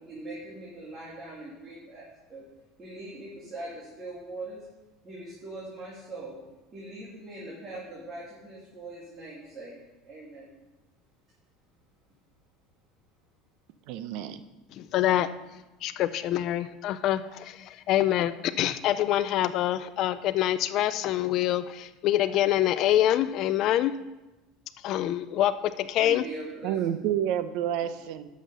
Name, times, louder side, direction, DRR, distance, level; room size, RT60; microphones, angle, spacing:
voice 1, 0.0-2.4 2.8-4.7 5.0-6.4 6.7-9.7 10.0-10.5 26.0-26.8, right 2 dB, 30° right, -6 dB, 2.6 m, -41 dB
voice 2, 13.9-14.4 26.6-28.3, right 10 dB, 65° right, 12 dB, 0.7 m, -29 dB
voice 3, 14.7-24.0 24.8-26.3, left 12 dB, 50° left, 12 dB, 0.4 m, -26 dB
11.5 x 6.2 x 5.4 m, 1.1 s
supercardioid pair, 135°, 0 cm